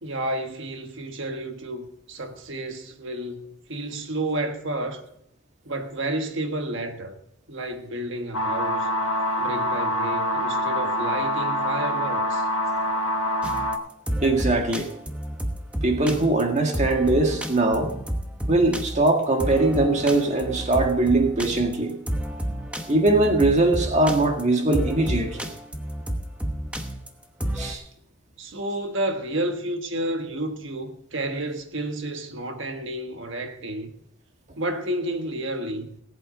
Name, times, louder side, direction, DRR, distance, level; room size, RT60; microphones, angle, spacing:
voice 1, 0.0-5.0 5.6-7.1 7.5-8.9 9.4-12.5 28.4-33.9 34.6-36.0, right 1 dB, 60° right, 1.5 m, -31 dB
sound 1, 8.3-13.8, equal, 85° left, 1.2 m, -25 dB
sound 2, 13.4-27.7, equal, 5° right, 0.9 m, -30 dB
voice 2, 14.2-14.9 15.8-17.9 18.5-21.9 22.9-25.5 27.6-27.8, right 2 dB, 30° right, 1.7 m, -21 dB
19.0 x 8.4 x 3.9 m
head